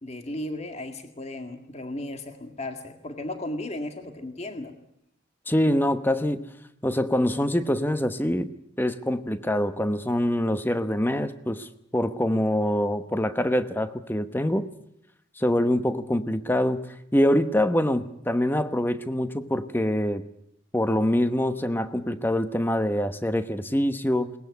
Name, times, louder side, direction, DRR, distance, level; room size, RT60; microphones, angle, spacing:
voice 1, 0.0-4.7, left 1 dB, 35° left, 2.0 m, -35 dB
voice 2, 5.5-6.5 6.8-14.7 15.4-20.2 20.7-24.3, left 1 dB, 10° left, 1.0 m, -25 dB
21.5 x 20.0 x 9.5 m
head